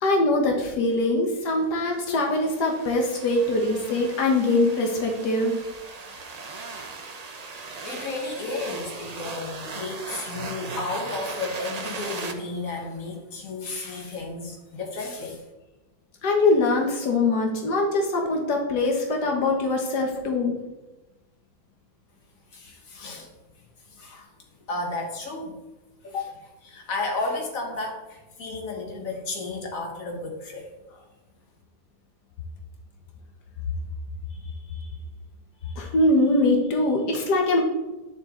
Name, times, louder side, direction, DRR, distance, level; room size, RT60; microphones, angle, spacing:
voice 1, 0.0-5.6 16.2-20.6 35.8-37.6, left 2 dB, 90° left, 1 dB, 1.8 m, -23 dB
sound 1, 1.9-12.3, right 4 dB, 35° right, 0.7 m, -38 dB
voice 2, 7.8-15.4 22.5-23.3 23.9-24.3 24.7-25.6 26.0-30.7, left 3 dB, 55° left, 0 dB, 2.1 m, -33 dB
10.5 x 6.9 x 3.8 m, 1.1 s
omnidirectional pair, 1.7 m